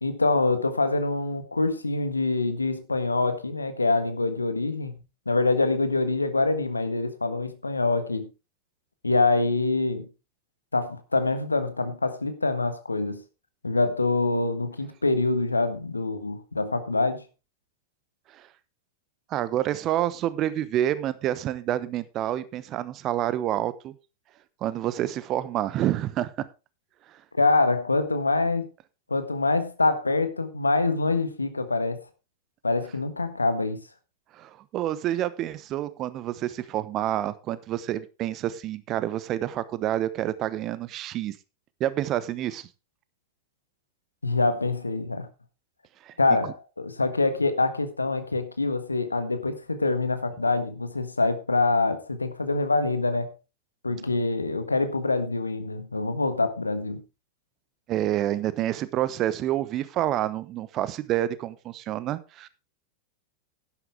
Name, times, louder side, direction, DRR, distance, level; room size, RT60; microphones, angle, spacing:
voice 1, 0.0-5.0 5.2-8.3 9.0-10.1 10.7-13.2 13.6-17.2 27.4-28.7 29.1-32.0 32.6-33.8 44.2-45.3 46.2-53.3 53.8-57.0, left 3 dB, 80° left, 1.5 m, -25 dB
voice 2, 19.3-23.9 24.6-26.3 34.3-41.4 41.8-42.7 46.0-46.1 57.9-62.5, right 12 dB, 35° right, 1.0 m, -28 dB
11.5 x 11.0 x 3.4 m
figure-of-eight pair, 90°, 0 cm